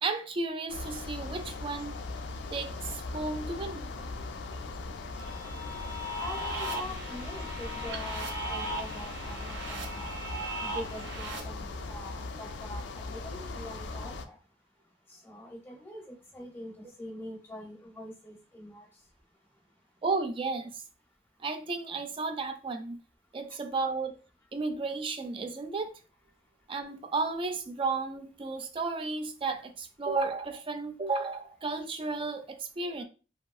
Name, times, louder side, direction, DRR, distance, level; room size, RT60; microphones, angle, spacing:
voice 1, 0.0-2.0 2.5-4.3 20.0-20.8 21.4-23.0 23.3-24.2 24.5-26.0 26.7-33.0, right 3 dB, 30° right, 0.3 m, -33 dB
sound 1, 0.7-14.2, left 3 dB, 70° left, 0.3 m, -39 dB
sound 2, 5.2-11.4, right 1 dB, 85° right, 0.6 m, -37 dB
voice 2, 6.2-10.1 10.6-14.4 15.1-18.9, left 1 dB, 10° left, 0.6 m, -44 dB
2.6 x 2.6 x 2.3 m
head